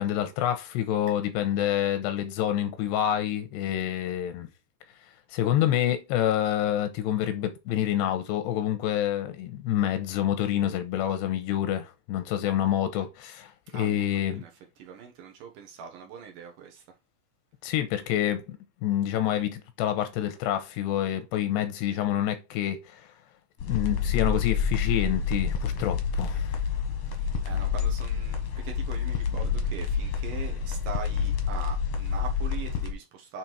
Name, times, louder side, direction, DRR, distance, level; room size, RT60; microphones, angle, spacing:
voice 1, 0.0-4.5 5.3-14.4 17.6-23.1 23.6-26.5, left 11 dB, 90° left, 3.2 m, -27 dB
voice 2, 13.7-14.5 14.8-16.8 27.1-33.4, right 7 dB, 65° right, 2.4 m, -42 dB
sound 1, 23.6-32.9, left 6 dB, 60° left, 1.6 m, -28 dB
8.1 x 3.7 x 4.6 m
omnidirectional pair, 4.8 m